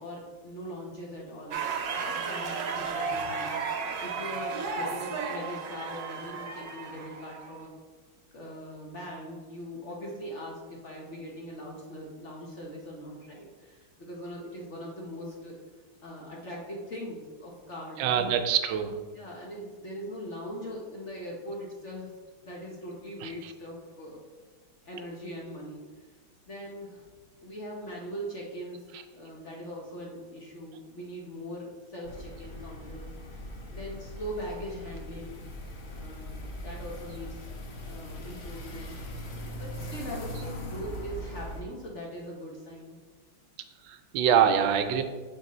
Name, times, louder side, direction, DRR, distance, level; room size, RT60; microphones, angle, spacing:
voice 1, 0.0-1.6 2.0-7.7 8.3-15.5 16.0-18.4 19.1-22.1 22.4-24.2 24.8-26.0 26.5-27.1 27.4-28.8 29.1-33.1 33.7-35.4 35.8-37.5 37.8-38.9 39.6-43.0, equal, 50° left, -2 dB, 0.9 m, -41 dB
sound 1, 1.5-7.7, right 5 dB, 65° right, 1.1 m, -34 dB
voice 2, 18.0-19.0 23.2-23.3 43.8-45.0, right 8 dB, 80° right, 7 dB, 1.4 m, -24 dB
sound 2, 32.0-41.6, equal, 85° left, 0.5 m, -40 dB
7.1 x 3.8 x 4.1 m, 1.4 s
omnidirectional pair, 2.1 m